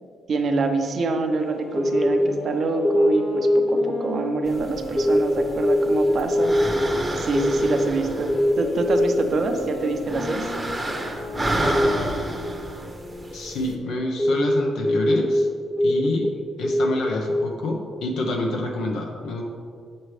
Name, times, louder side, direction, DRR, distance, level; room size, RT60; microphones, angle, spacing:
voice 1, 0.3-6.5 7.2-10.5, right 3 dB, 50° right, 5 dB, 0.7 m, -26 dB
sound 1, 1.4-7.1 7.8-13.2, left 1 dB, 50° left, 1.0 m, -36 dB
sound 2, 1.4-1.5 1.7-3.8 5.0-9.7 11.7-11.9 12.9-15.4 15.8-16.3 16.6-17.4, equal, 10° left, 0.4 m, -22 dB
sound 3, 4.5-13.7, right 1 dB, 15° right, 0.8 m, -31 dB
voice 2, 13.3-15.5 15.8-16.3 16.6-19.4, left 2 dB, 80° left, 1 dB, 0.7 m, -27 dB
7.3 x 6.3 x 3.2 m, 2.2 s
cardioid pair, 90°, 0 cm